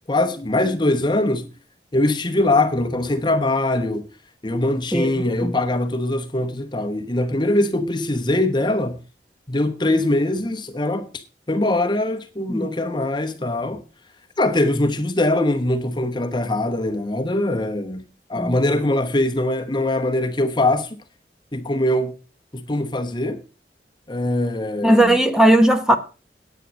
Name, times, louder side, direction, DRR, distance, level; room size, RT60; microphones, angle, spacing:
voice 1, 0.1-1.5 1.9-4.0 4.4-9.0 9.5-11.1 11.5-13.8 14.4-18.0 18.3-21.0 21.5-22.1 22.5-23.4 24.1-25.2, left 1 dB, 25° left, 1.0 m, -22 dB
voice 2, 24.8-26.0, right 1 dB, 5° right, 1.1 m, -16 dB
9.9 x 9.3 x 6.2 m
head